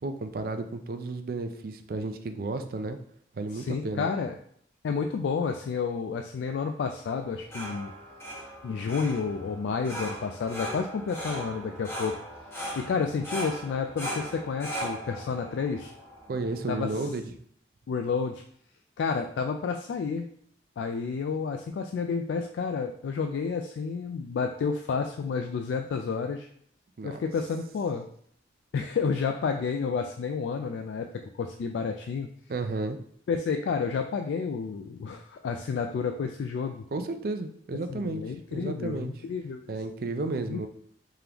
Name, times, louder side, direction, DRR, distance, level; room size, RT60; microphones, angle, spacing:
voice 1, 0.0-3.0 3.3-4.1 16.3-17.3 27.0-27.2 32.5-33.0 36.9-39.1 39.7-40.7, right 3 dB, 55° right, 7 dB, 0.4 m, -33 dB
voice 2, 3.5-4.3 4.8-7.9 8.6-12.2 12.8-15.9 16.7-16.9 17.9-18.4 19.0-20.3 20.8-26.5 27.0-28.1 28.7-31.1 31.4-32.3 33.3-36.8 37.9-39.8 40.5-40.7, left 5 dB, 80° left, 5 dB, 0.3 m, -30 dB
sound 1, 7.2-16.9, equal, 15° left, 1.2 m, -39 dB
3.6 x 3.4 x 2.9 m, 0.63 s
head